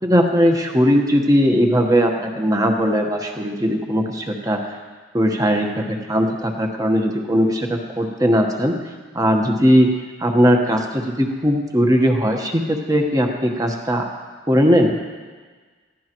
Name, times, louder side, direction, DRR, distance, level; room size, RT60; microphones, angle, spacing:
voice 1, 0.0-4.6 5.1-8.7 9.1-9.9 10.2-14.1 14.5-14.9, equal, 20° right, 3 dB, 1.2 m, -18 dB
20.0 x 15.5 x 3.1 m, 1.5 s
head